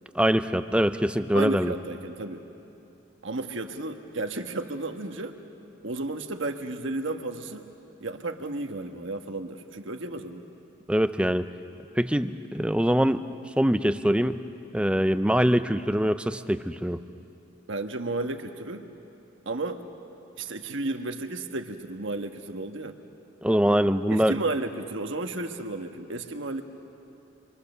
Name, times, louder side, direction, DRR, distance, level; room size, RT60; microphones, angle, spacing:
voice 1, 0.1-1.7 10.9-11.5 12.0-13.2 13.6-14.4 14.7-17.0 23.4-24.4, equal, 5° right, 10 dB, 0.5 m, -23 dB
voice 2, 1.3-2.4 3.2-5.4 5.8-7.7 8.0-10.4 17.7-18.9 19.4-19.8 20.4-22.9 24.1-26.6, right 2 dB, 70° right, 5 dB, 1.3 m, -33 dB
28.0 x 24.5 x 6.8 m, 2.9 s
head